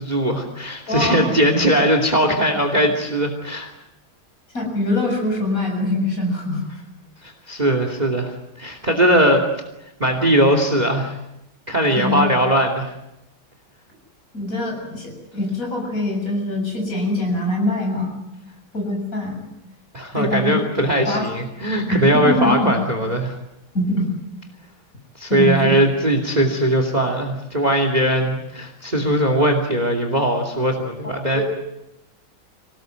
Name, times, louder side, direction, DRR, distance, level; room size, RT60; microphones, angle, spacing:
voice 1, 0.0-3.7 7.2-9.5 10.0-11.2 11.7-12.9 19.9-23.3 25.2-31.4, right 1 dB, 20° right, 6 dB, 2.7 m, -19 dB
voice 2, 0.9-1.2 4.5-6.6 12.0-12.4 14.3-18.2 18.7-19.4 20.1-20.6 21.0-21.2 21.9-22.7 23.7-24.1 25.3-25.8 31.4-31.5, left 1 dB, 40° left, 1 dB, 7.6 m, -23 dB
26.0 x 18.0 x 9.3 m, 0.87 s
omnidirectional pair, 2.3 m